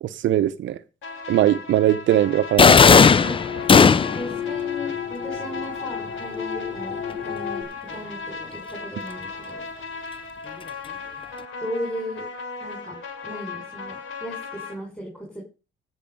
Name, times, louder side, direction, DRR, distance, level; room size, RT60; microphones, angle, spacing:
voice 1, 0.0-0.8 1.3-2.8, right 12 dB, 70° right, 0.7 m, -20 dB
sound 1, 1.0-14.7, left 4 dB, 80° left, 3.9 m, -37 dB
sound 2, 2.6-4.3, left 5 dB, 25° left, 0.5 m, -14 dB
voice 2, 2.9-3.7 4.1-9.7 11.6-12.3 12.6-13.0 13.2-15.4, left 1 dB, 5° left, 5.0 m, -36 dB
sound 3, 3.0-7.6, left 8 dB, 50° left, 3.1 m, -32 dB
15.5 x 6.5 x 5.3 m
cardioid pair, 90°, 20 cm